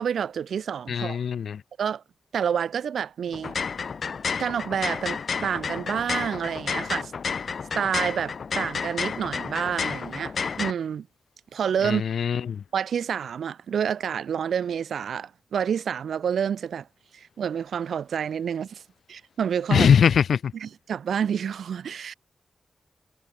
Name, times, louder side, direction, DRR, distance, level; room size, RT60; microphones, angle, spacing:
voice 1, 0.0-1.2 1.8-2.0 2.3-3.6 4.4-7.1 7.7-11.1 11.5-12.0 12.7-16.9 17.1-18.8 19.1-19.9 20.5-22.1, right 8 dB, 90° right, 6.7 m, -28 dB
voice 2, 0.9-1.6 11.8-12.6 19.7-20.4, left 7 dB, 85° left, 4.8 m, -21 dB
sound 1, 3.3-10.7, left 5 dB, 65° left, 1.5 m, -31 dB
cardioid pair, 80°, 0 cm